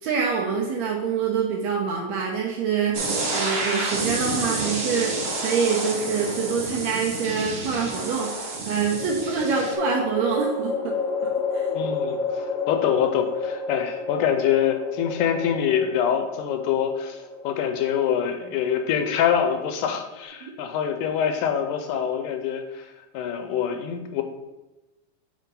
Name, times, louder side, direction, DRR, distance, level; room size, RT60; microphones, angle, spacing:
voice 1, 0.0-3.0 3.3-5.1 5.4-8.3 8.6-11.0 11.5-11.8 20.4-20.5, right 6 dB, 75° right, -1 dB, 1.7 m, -25 dB
sound 1, 2.9-9.7, right 2 dB, 55° right, 1.7 m, -29 dB
sound 2, 6.3-6.6 8.9-20.2, left 4 dB, 20° left, 0.7 m, -31 dB
voice 2, 11.7-17.2 17.4-22.9 23.1-24.2, left 8 dB, 80° left, 6 dB, 2.0 m, -25 dB
7.3 x 2.8 x 5.3 m, 1.0 s
omnidirectional pair, 3.7 m